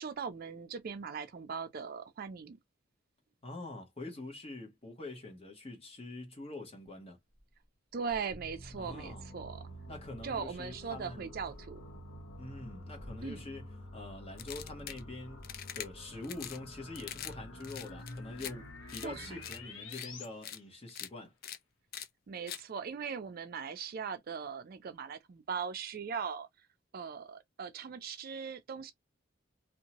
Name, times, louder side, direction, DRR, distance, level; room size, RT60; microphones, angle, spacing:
voice 1, 0.0-2.6 7.9-9.6 10.2-11.8 13.2-13.4 19.0-19.4 22.3-26.5 26.9-28.9, right 6 dB, 50° right, 0.4 m, -39 dB
voice 2, 3.4-7.2 8.8-9.2 9.9-11.3 12.4-15.4 15.7-21.3, left 2 dB, 30° left, 0.9 m, -45 dB
sound 1, 7.3-8.8 11.3-11.8 12.6-13.9, equal, 5° right, 1.3 m, -57 dB
sound 2, 8.3-20.3, left 1 dB, 70° left, 0.7 m, -48 dB
sound 3, 14.4-15.0 15.4-15.9 16.2-16.6 16.9-17.3 17.6-18.5 18.9-19.1 19.4-19.6 19.9-20.1 20.4-20.6 20.9-21.1 21.4-21.6 21.9-22.1 22.5-22.6, left 10 dB, 50° left, 0.3 m, -43 dB
2.7 x 2.1 x 2.8 m
head